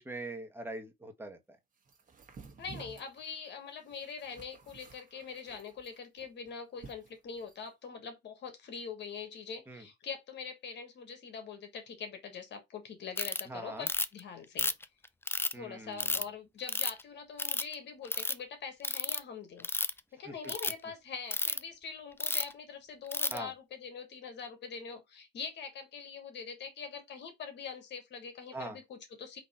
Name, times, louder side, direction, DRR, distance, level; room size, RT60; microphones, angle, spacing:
voice 1, 0.0-1.6 9.7-9.8 13.5-13.9 15.5-16.1 20.2-20.3 23.3-23.5 28.5-28.8, right 2 dB, 10° right, 1.3 m, -42 dB
sound 1, 1.8-7.7, right 4 dB, 45° right, 1.4 m, -53 dB
voice 2, 2.6-14.7 15.5-19.7 20.1-29.4, left 6 dB, 70° left, 1.4 m, -43 dB
Ratchet pawl, 13.2-13.4 13.9-14.2 14.6-15.5 16.0-16.2 16.7-17.0 17.4-17.7 18.0-18.3 18.8-19.2 19.6-20.0 20.4-20.7 21.3-21.6 22.2-22.5 23.1-23.4, left 3 dB, 10° left, 0.4 m, -31 dB
4.0 x 2.9 x 4.3 m
cardioid pair, 95°, 19 cm